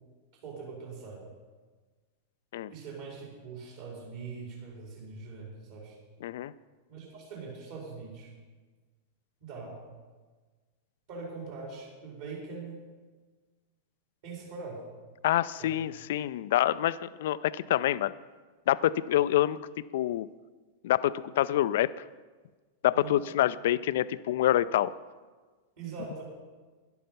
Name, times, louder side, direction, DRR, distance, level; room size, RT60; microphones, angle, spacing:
voice 1, 0.4-1.2 2.7-5.9 6.9-8.3 9.4-9.8 11.1-12.8 14.2-14.8 15.6-15.7 22.9-23.2 25.8-26.2, right 4 dB, 55° right, -3 dB, 4.5 m, -42 dB
voice 2, 6.2-6.5 15.2-18.1 18.7-19.6 19.9-20.3 20.8-21.9 22.8-24.9, left 13 dB, 55° left, 17 dB, 0.4 m, -26 dB
12.5 x 11.0 x 5.6 m, 1.4 s
figure-of-eight pair, 90°, 0 cm